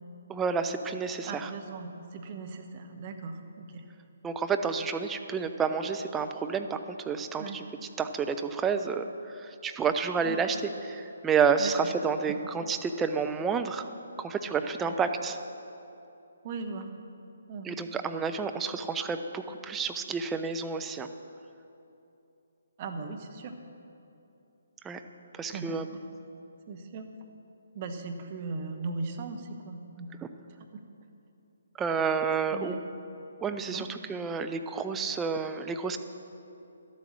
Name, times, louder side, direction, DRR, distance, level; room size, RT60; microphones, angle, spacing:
voice 1, 0.3-1.5 4.2-7.7 8.0-9.0 9.3-10.6 10.8-13.9 14.2-15.4 17.6-21.1 24.8-25.0 25.3-25.8 31.8-32.7 33.4-36.0, right 5 dB, 10° right, 7 dB, 0.5 m, -30 dB
voice 2, 1.2-3.8 7.4-7.6 10.2-10.4 11.6-11.7 12.3-12.4 14.8-15.0 16.4-16.9 17.5-17.7 22.8-23.5 25.5-25.8 26.7-27.1 27.7-30.2 30.6-30.8 32.5-32.8 33.7-33.8, right 4 dB, 35° right, 4 dB, 1.0 m, -38 dB
11.5 x 8.3 x 6.3 m, 2.8 s
figure-of-eight pair, 135°, 0 cm